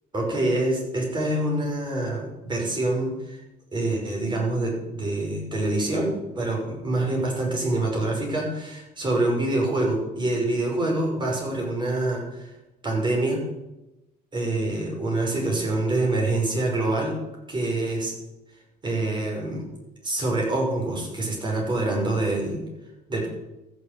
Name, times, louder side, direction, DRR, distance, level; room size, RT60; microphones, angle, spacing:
voice 1, 0.1-3.4 3.7-12.5 12.8-13.4 14.3-17.2 17.5-18.1 18.8-19.7 20.0-22.6 23.1-23.3, right 2 dB, 25° right, -1 dB, 5.5 m, -26 dB
14.0 x 6.8 x 8.2 m, 0.98 s
cardioid pair, 110°, 17 cm